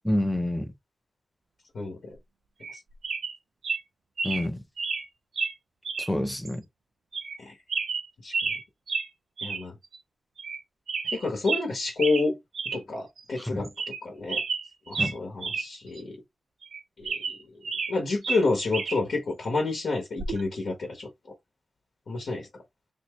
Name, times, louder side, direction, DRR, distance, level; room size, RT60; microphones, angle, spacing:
voice 1, 0.0-0.7 4.2-4.6 6.0-6.6 13.4-13.7 15.0-15.2, left 1 dB, ahead, 0.5 m, -28 dB
voice 2, 1.7-2.1 7.4-7.5 8.2-8.4 9.4-9.7 11.1-12.4 12.7-14.4 14.9-16.2 17.0-17.2 17.9-21.1 22.1-22.5, left 3 dB, 65° left, 1.0 m, -29 dB
sound 1, 2.6-2.8 3.0-3.4 3.6-3.8 4.2-4.5 4.8-5.0 5.4-5.5 5.8-6.1 6.4-6.5 7.1-7.4 7.7-8.6 8.9-9.1 9.4-9.6 9.9-10.0 10.4-10.6 10.9-11.6 12.0-12.3 12.5-12.8 13.2-13.3 13.6-14.0 14.3-15.7 16.0-16.1 16.6-17.9 18.2-19.0 20.2-20.4, right 4 dB, 80° right, 0.7 m, -31 dB
3.5 x 2.7 x 3.0 m
wide cardioid pair, 175°, 0 cm